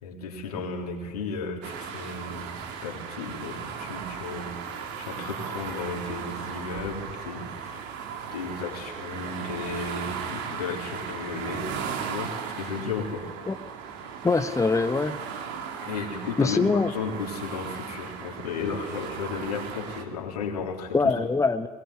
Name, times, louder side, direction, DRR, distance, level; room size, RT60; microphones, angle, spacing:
voice 1, 0.0-2.5 2.8-7.8 8.3-11.8 12.0-13.2 15.8-21.2, left 4 dB, 85° left, 1 dB, 3.5 m, -34 dB
sound 1, 1.6-20.0, right 7 dB, 65° right, 2.7 m, -36 dB
voice 2, 14.2-15.2 16.4-16.9 20.9-21.7, left 4 dB, 15° left, 9 dB, 1.2 m, -23 dB
22.0 x 19.5 x 9.7 m, 1.4 s
hypercardioid pair, 65°, 19 cm